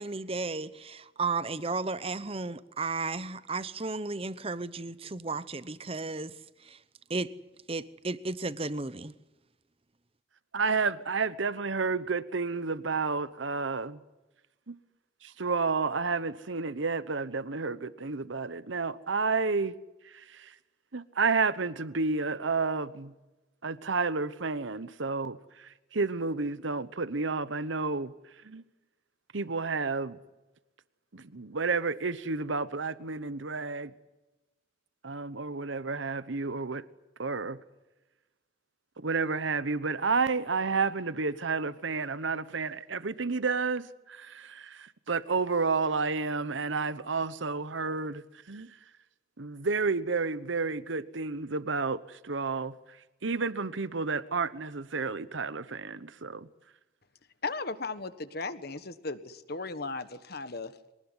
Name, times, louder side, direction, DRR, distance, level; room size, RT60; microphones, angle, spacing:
voice 1, 0.0-6.3 6.6-6.8 7.1-7.3 7.7-9.1, right 3 dB, 30° right, 0.8 m, -34 dB
voice 2, 10.5-14.0 14.7-14.8 15.2-19.7 20.1-20.5 20.9-23.1 23.6-28.1 28.4-28.6 29.3-30.2 31.1-33.9 35.0-36.8 37.2-37.6 39.0-48.7 49.4-52.7 53.2-56.5, right 4 dB, 70° right, 1.0 m, -31 dB
voice 3, 57.4-60.7, left 3 dB, 50° left, 1.4 m, -36 dB
24.0 x 19.5 x 9.7 m
head